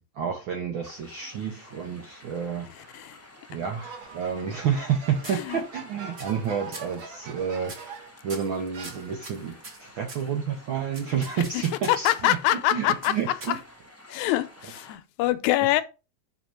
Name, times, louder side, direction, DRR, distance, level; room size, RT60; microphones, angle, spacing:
voice 1, 0.0-3.1 3.5-12.4 12.7-13.6, right 7 dB, 80° right, 1.1 m, -30 dB
sound 1, 0.8-14.9, left 1 dB, 10° left, 1.1 m, -51 dB
sound 2, 3.8-8.2 8.7-9.5, right 5 dB, 55° right, 1.7 m, -43 dB
sound 3, 4.0-4.9 5.2-5.8 6.2-6.5 6.7-7.0 7.6-8.0 8.3-10.3 10.9-12.3 13.0-13.9, right 2 dB, 35° right, 1.2 m, -43 dB
voice 2, 11.9-13.2 14.1-15.8, left 14 dB, 85° left, 2.0 m, -24 dB
5.8 x 4.2 x 4.5 m
omnidirectional pair, 3.3 m